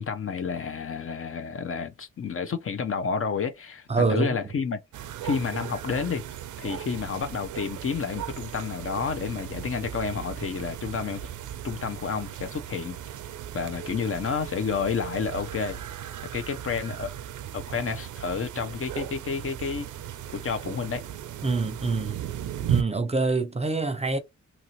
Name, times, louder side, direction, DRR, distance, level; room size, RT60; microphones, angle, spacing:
voice 1, 0.0-4.8 5.2-6.2 6.6-11.3 11.6-13.0 13.5-15.8 16.3-17.1 17.5-19.9 20.3-21.0, left 6 dB, 50° left, 0.6 m, -30 dB
voice 2, 3.9-4.4 21.4-22.2 22.7-24.2, right 3 dB, 20° right, 0.6 m, -25 dB
sound 1, 4.9-22.8, right 10 dB, 85° right, 0.5 m, -36 dB
2.9 x 2.6 x 2.9 m
cardioid pair, 80°, 29 cm